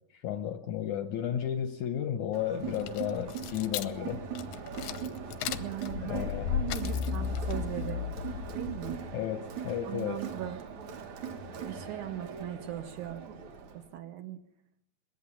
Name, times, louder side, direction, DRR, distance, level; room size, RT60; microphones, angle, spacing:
voice 1, 0.1-4.2 6.0-6.6 9.1-10.2, left 10 dB, 75° left, 1.8 m, -33 dB
Crowd, 2.3-13.9, right 6 dB, 55° right, 2.6 m, -41 dB
sound 1, 2.6-9.2, left 9 dB, 90° left, 2.9 m, -35 dB
voice 2, 5.6-8.0 8.5-9.0 9.9-10.6 11.6-13.2 13.7-14.4, right 11 dB, 70° right, 2.0 m, -39 dB
21.5 x 17.0 x 7.2 m
omnidirectional pair, 4.3 m